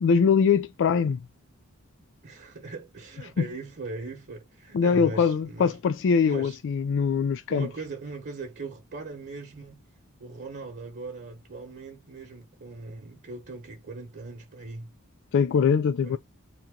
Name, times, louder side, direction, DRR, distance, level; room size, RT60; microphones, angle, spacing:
voice 1, 0.0-1.2 3.4-3.5 4.7-7.7 15.3-16.2, left 6 dB, 60° left, 0.3 m, -22 dB
voice 2, 2.2-5.8 6.2-6.6 7.5-9.8 10.2-14.9 16.0-16.2, right 3 dB, 50° right, 1.0 m, -39 dB
3.7 x 2.9 x 3.7 m
head